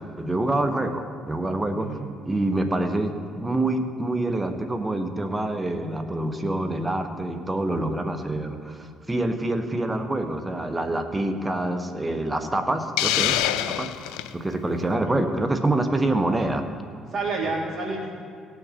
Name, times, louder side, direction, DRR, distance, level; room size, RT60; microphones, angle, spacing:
voice 1, 0.2-1.9 2.3-16.6, right 2 dB, 20° right, 7 dB, 1.3 m, -26 dB
voice 2, 1.8-2.1 14.9-15.2 17.1-18.1, right 3 dB, 50° right, -2 dB, 2.9 m, -29 dB
Hiss, 13.0-14.3, left 13 dB, 85° left, 0.4 m, -24 dB
18.0 x 6.1 x 4.2 m, 2.3 s
hypercardioid pair, 60°, 0 cm